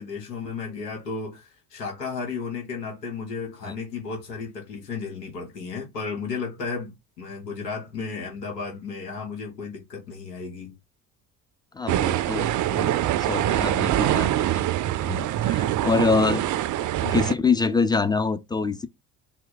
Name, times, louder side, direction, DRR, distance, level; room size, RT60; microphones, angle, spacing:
voice 1, 0.0-10.8 17.0-17.3, left 5 dB, 85° left, 1.3 m, -34 dB
voice 2, 11.7-14.6 15.1-16.4 17.1-18.9, left 4 dB, 10° left, 0.5 m, -25 dB
sound 1, 11.9-17.3, right 13 dB, 40° right, 0.5 m, -24 dB
4.2 x 2.1 x 4.0 m
hypercardioid pair, 55°, 47 cm